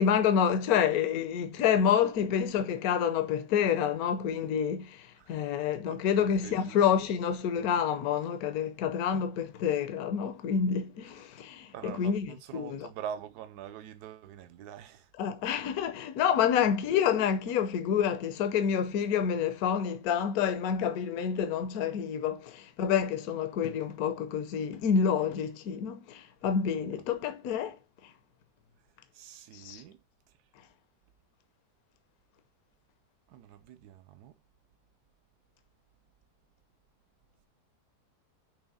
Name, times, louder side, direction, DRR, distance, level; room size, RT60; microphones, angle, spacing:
voice 1, 0.0-12.9 15.2-27.8 29.5-29.8, left 8 dB, 65° left, 1.1 m, -28 dB
voice 2, 5.9-6.8 11.7-15.1 29.1-30.0 33.3-34.3, right 9 dB, 70° right, 1.2 m, -44 dB
6.2 x 3.2 x 5.4 m
omnidirectional pair, 1.8 m